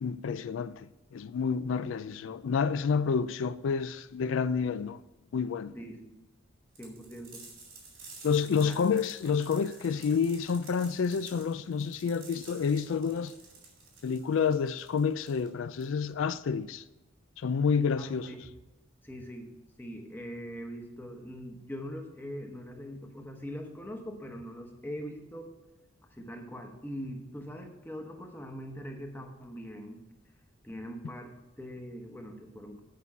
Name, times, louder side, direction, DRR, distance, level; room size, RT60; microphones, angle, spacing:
voice 1, 0.0-5.0 5.3-5.7 8.2-13.3 14.0-16.8 17.4-18.3, left 6 dB, 70° left, 0.3 m, -29 dB
voice 2, 5.7-6.1 6.8-7.4 8.6-8.7 18.0-18.4 19.0-25.5 26.1-30.0 30.6-32.8, equal, 10° left, 0.9 m, -42 dB
sound 1, 6.8-16.1, right 4 dB, 80° right, 2.7 m, -52 dB
8.5 x 5.5 x 5.6 m
head